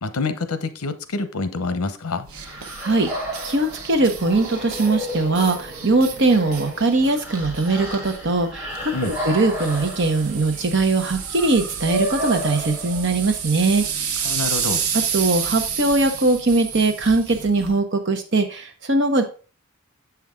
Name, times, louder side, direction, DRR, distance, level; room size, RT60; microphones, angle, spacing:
voice 1, 0.0-2.3 8.9-9.1 14.2-14.9, left 3 dB, 90° left, 11 dB, 0.8 m, -27 dB
sound 1, 2.3-17.8, right 7 dB, 80° right, 0.9 m, -31 dB
sound 2, 2.4-13.5, equal, 5° right, 3.6 m, -33 dB
voice 2, 3.4-14.2 15.1-19.2, right 3 dB, 55° right, 5 dB, 1.1 m, -21 dB
7.4 x 6.0 x 3.6 m, 0.37 s
head